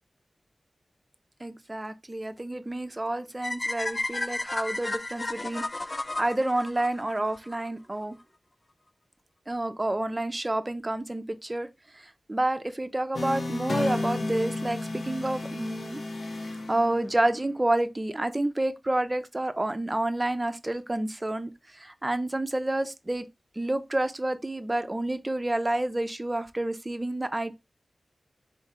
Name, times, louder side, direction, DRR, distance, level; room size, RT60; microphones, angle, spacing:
voice 1, 1.4-5.6 5.9-8.2 9.5-11.7 11.9-16.0 16.4-23.3 23.6-27.6, right 1 dB, 25° right, 0.5 m, -29 dB
sound 1, 3.4-7.5, left 2 dB, 35° left, 0.3 m, -33 dB
sound 2, 13.1-17.4, left 2 dB, 70° left, 0.6 m, -32 dB
4.4 x 3.1 x 3.6 m
wide cardioid pair, 85°, 0 cm